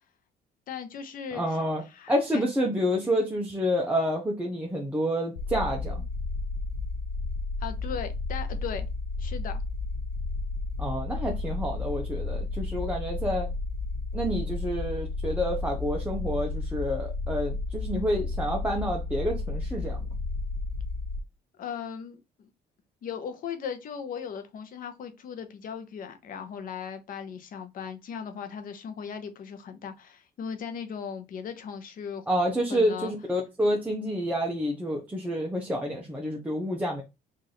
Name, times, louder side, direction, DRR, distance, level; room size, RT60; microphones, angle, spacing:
voice 1, 0.7-2.5 7.6-8.9 9.2-9.6 21.6-22.5 23.0-32.2 32.7-33.1, left 7 dB, 55° left, 0.8 m, -38 dB
voice 2, 1.3-6.0 10.8-13.5 14.1-20.0 32.3-37.0, equal, 10° right, 0.7 m, -28 dB
sound 1, 5.4-21.2, left 3 dB, 85° left, 0.6 m, -32 dB
3.2 x 2.6 x 3.9 m
cardioid pair, 110°, 17 cm